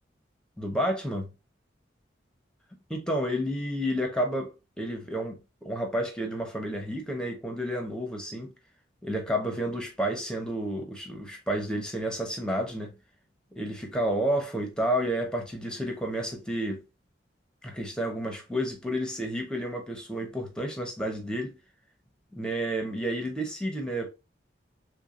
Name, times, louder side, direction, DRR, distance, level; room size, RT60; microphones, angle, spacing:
voice 1, 0.6-1.2 2.9-8.5 9.0-12.9 13.6-16.8 17.6-21.6 22.3-24.1, equal, 5° left, 0.9 m, -30 dB
6.2 x 2.3 x 2.5 m
head